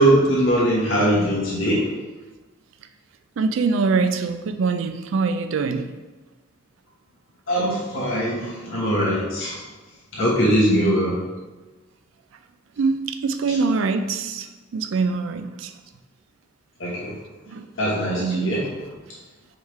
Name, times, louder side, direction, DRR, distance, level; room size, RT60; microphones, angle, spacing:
voice 1, 0.0-1.9 7.5-9.7 10.1-11.2 13.5-13.6 16.8-17.2 17.8-18.9, right 1 dB, 80° left, -6 dB, 1.1 m, -21 dB
voice 2, 3.4-5.9 10.7-11.0 12.8-15.7 17.5-17.7 18.2-18.5, right 4 dB, 75° right, 8 dB, 0.4 m, -24 dB
4.6 x 3.6 x 3.1 m, 1.2 s
head